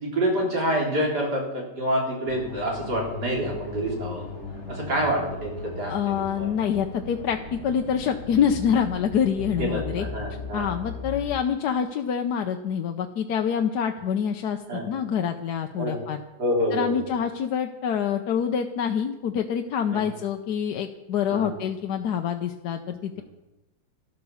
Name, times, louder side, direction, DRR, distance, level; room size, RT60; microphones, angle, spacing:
voice 1, 0.0-4.2 4.7-5.5 5.8-6.5 9.6-10.8 14.7-14.8 15.8-16.0 16.4-16.9 19.9-20.0 21.3-21.5 23.1-23.2, equal, 65° right, -1 dB, 4.2 m, -27 dB
sound 1, 2.3-11.4, left 4 dB, 40° left, 1.9 m, -37 dB
voice 2, 5.9-10.0 10.5-16.2 16.7-23.2, left 8 dB, 70° left, 5 dB, 1.3 m, -26 dB
13.0 x 12.0 x 7.1 m, 0.98 s
omnidirectional pair, 1.9 m